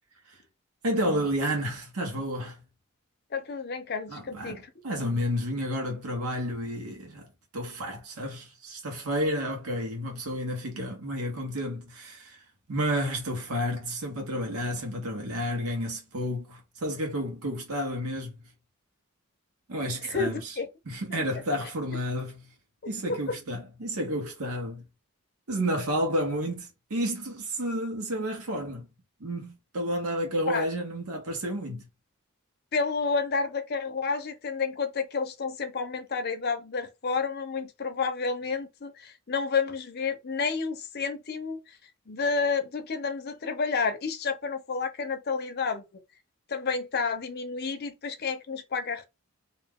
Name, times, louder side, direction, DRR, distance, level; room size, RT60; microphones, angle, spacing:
voice 1, 0.8-2.6 4.1-7.3 7.5-12.4 12.7-18.4 19.7-20.6 20.9-22.5 22.9-24.8 25.5-28.9 29.2-31.9, equal, 90° right, 1.0 m, -31 dB
voice 2, 3.3-4.7 20.0-20.7 21.1-21.2 30.5-30.6 32.7-41.8 42.1-45.8 46.5-49.1, left 5 dB, 45° left, 0.6 m, -30 dB
2.5 x 2.3 x 3.5 m
head